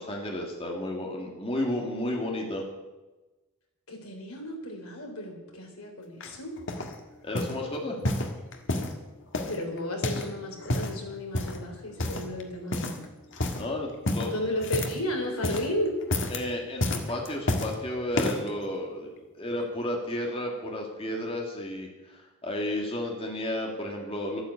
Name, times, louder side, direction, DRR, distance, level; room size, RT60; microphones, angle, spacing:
voice 1, 0.0-2.7 7.2-8.0 13.6-14.4 16.3-24.4, left 1 dB, 25° left, 0 dB, 1.9 m, -32 dB
voice 2, 3.9-6.6 9.5-13.0 14.3-16.0, left 1 dB, 75° left, 2 dB, 3.7 m, -33 dB
sound 1, 6.2-7.0 7.4-7.6 8.0-9.0 9.3-10.3 10.6-11.0 11.3-11.7 12.0-12.4 12.7-13.1 13.3-13.7 14.1-15.1 15.3-15.7 16.0-16.4 16.8-17.8 18.1-18.5 19.2-19.3, left 1 dB, 55° left, 1.6 m, -30 dB
13.0 x 9.5 x 8.3 m, 1.1 s
head